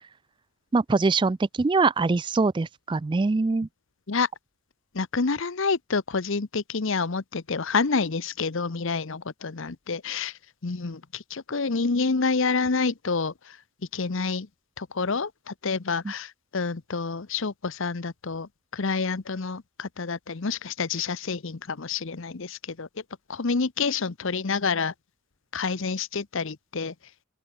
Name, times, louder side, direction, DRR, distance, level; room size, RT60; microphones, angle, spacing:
voice 1, 0.7-3.7 16.0-16.1, right 3 dB, 20° right, 0.3 m, -23 dB
voice 2, 4.9-10.3 10.6-13.6 13.9-14.5 14.8-22.9 23.3-24.9 25.5-26.9, left 4 dB, 55° left, 0.8 m, -28 dB
open air
head